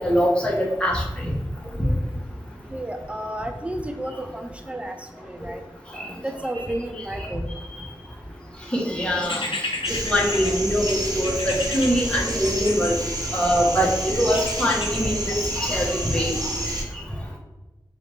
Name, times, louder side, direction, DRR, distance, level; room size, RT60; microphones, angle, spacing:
voice 1, 0.0-1.3 5.9-6.1 7.2-7.3 8.7-9.4 10.1-12.9 13.3-16.3, equal, 10° left, -4 dB, 1.4 m, -23 dB
voice 2, 2.7-4.9 5.3-5.6 6.2-7.5, right 1 dB, 15° right, 5 dB, 0.6 m, -31 dB
sound 1, 9.2-13.4 14.3-15.0, left 2 dB, 75° left, 0.7 m, -33 dB
sound 2, 9.8-16.8, right 1 dB, 45° right, 1.1 m, -29 dB
4.8 x 2.7 x 3.5 m, 1.1 s
cardioid pair, 40°, 9 cm